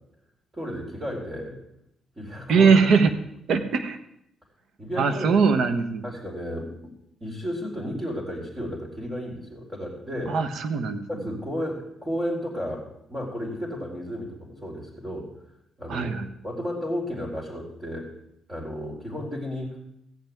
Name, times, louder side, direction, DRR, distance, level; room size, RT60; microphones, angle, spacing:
voice 1, 0.5-1.6 2.2-2.8 3.5-3.6 4.8-5.4 6.0-6.9 7.2-10.4 11.1-12.8 13.1-15.3 15.8-16.1 16.4-18.1 18.5-19.8, equal, 20° right, -2 dB, 3.9 m, -33 dB
voice 2, 2.5-3.1 3.5-4.0 5.0-6.0 10.3-11.0 15.9-16.3, right 5 dB, 70° right, 8 dB, 1.2 m, -21 dB
15.0 x 5.8 x 9.2 m, 0.78 s
cardioid pair, 90°, 0 cm